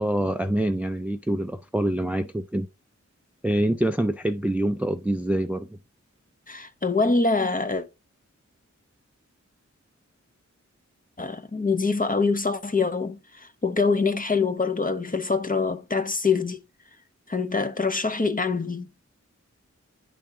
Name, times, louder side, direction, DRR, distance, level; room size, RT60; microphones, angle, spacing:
voice 1, 0.0-2.7 3.4-5.8, right 1 dB, 5° right, 0.3 m, -25 dB
voice 2, 6.5-7.9 11.2-16.6 17.3-18.9, left 4 dB, 30° left, 0.7 m, -25 dB
9.7 x 3.4 x 3.6 m
wide cardioid pair, 65°, 29 cm